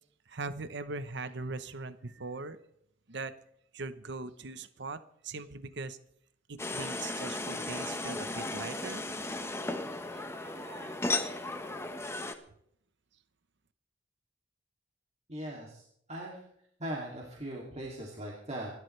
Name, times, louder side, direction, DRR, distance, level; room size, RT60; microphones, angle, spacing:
voice 1, 0.3-2.6 3.1-3.3 3.7-6.0 6.5-9.0 10.1-11.5, right 3 dB, 65° right, 12 dB, 0.9 m, -41 dB
sound 1, 6.6-12.3, left 2 dB, 15° left, 1.2 m, -35 dB
voice 2, 15.3-16.5 16.8-18.7, right 1 dB, 35° right, -3 dB, 2.7 m, -40 dB
27.5 x 12.5 x 3.3 m, 0.70 s
head